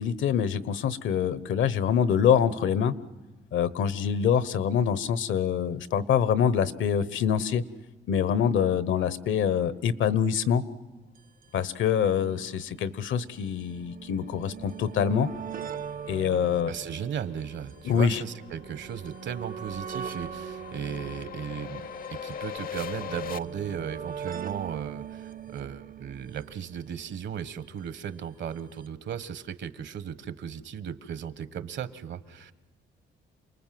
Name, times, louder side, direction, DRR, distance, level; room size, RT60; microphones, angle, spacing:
voice 1, 0.0-2.9 3.5-7.6 8.1-10.6 11.5-15.3 16.1-16.7 17.8-18.2, left 8 dB, 75° left, 16 dB, 1.1 m, -25 dB
sound 1, 11.2-11.3 11.4-11.5 12.4-27.6 28.6-28.7 28.9-29.0, right 8 dB, 45° right, 0.7 m, -41 dB
voice 2, 16.7-21.8 22.1-32.5, right 8 dB, 65° right, 13 dB, 1.3 m, -36 dB
sound 2, 16.8-23.4, left 8 dB, 45° left, 0.7 m, -41 dB
28.5 x 20.0 x 7.7 m, 1.2 s
cardioid pair, 90°, 20 cm